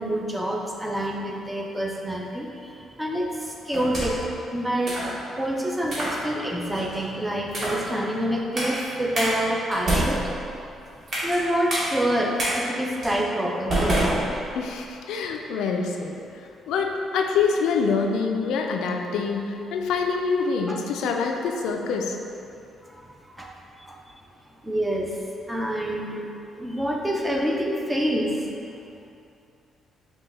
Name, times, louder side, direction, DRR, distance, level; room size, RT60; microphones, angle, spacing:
voice 1, 0.0-2.5 3.0-3.3 3.7-4.1 4.5-4.9 5.4-10.2 11.2-12.3 12.6-14.2 23.4-23.5 23.9-24.0 24.6-25.1 25.5-26.3 26.6-28.3, right 1 dB, 5° right, -1 dB, 0.3 m, -26 dB
sound 1, 3.7-4.3 4.9-5.1 5.8-6.2 6.7-7.0 7.5-7.9 8.6-8.8 9.2-9.3 9.7-11.4 11.7-11.9 12.4-12.5 13.0-13.2 13.7-14.8, right 1 dB, 40° right, 1.0 m, -27 dB
voice 2, 14.6-16.4 16.7-22.2, left 5 dB, 90° left, 3 dB, 0.3 m, -25 dB
5.2 x 2.2 x 3.3 m, 2.6 s
cardioid pair, 170°, 0 cm